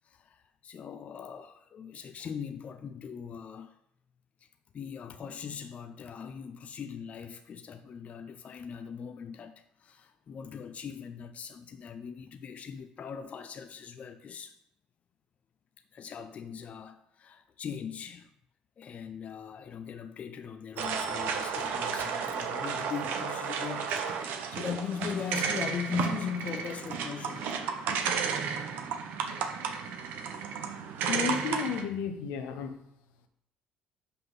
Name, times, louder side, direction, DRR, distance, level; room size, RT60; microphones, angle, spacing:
voice 1, 0.0-3.7 4.4-4.5 4.7-14.6 15.9-18.3 18.8-27.5, left 7 dB, 45° left, 0.5 m, -40 dB
sound 1, 20.8-31.8, right 6 dB, 75° right, 0.9 m, -33 dB
voice 2, 31.1-32.8, left 6 dB, 85° left, 0.9 m, -32 dB
5.7 x 5.5 x 5.5 m
supercardioid pair, 85°, 3 cm